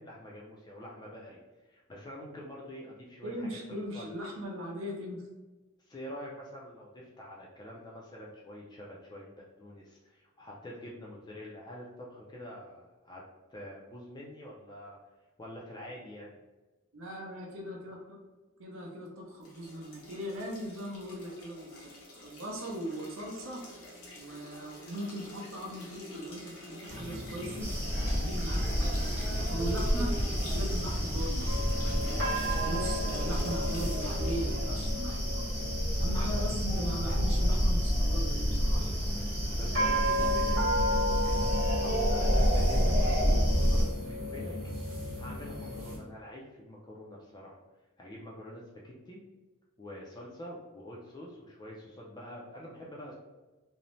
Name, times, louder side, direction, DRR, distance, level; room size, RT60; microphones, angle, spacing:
voice 1, 0.0-4.1 5.9-13.2 13.5-15.0 15.4-16.4 36.2-36.3 39.6-44.8 45.2-47.6 48.0-49.2 49.8-53.1, equal, 20° left, -3 dB, 0.3 m, -46 dB
voice 2, 3.2-5.2 16.9-18.2 18.6-23.6 24.2-32.1 32.6-35.5 36.0-39.0, equal, 65° right, 0 dB, 0.6 m, -39 dB
sound 1, 19.4-34.5, left 1 dB, 80° left, 0.7 m, -48 dB
sound 2, 26.9-46.0, equal, 45° right, 1.0 m, -35 dB
sound 3, 27.6-43.8, equal, 10° right, 0.7 m, -29 dB
2.6 x 2.0 x 3.0 m, 1.2 s
head